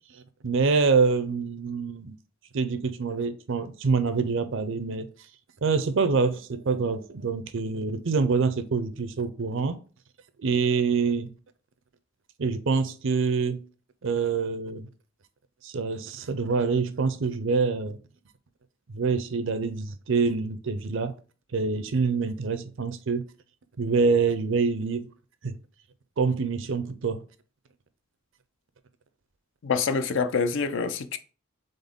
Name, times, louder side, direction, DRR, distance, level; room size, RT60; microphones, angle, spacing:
voice 1, 0.4-2.2 2.5-5.1 5.6-9.8 10.4-11.3 12.4-13.6 14.0-14.9 15.6-18.0 18.9-21.1 21.5-23.2 23.8-25.1 25.4-25.6 26.2-27.2, right 4 dB, 65° right, 0.5 m, -26 dB
voice 2, 29.6-31.2, left 5 dB, 65° left, 0.5 m, -26 dB
4.0 x 3.7 x 3.6 m
head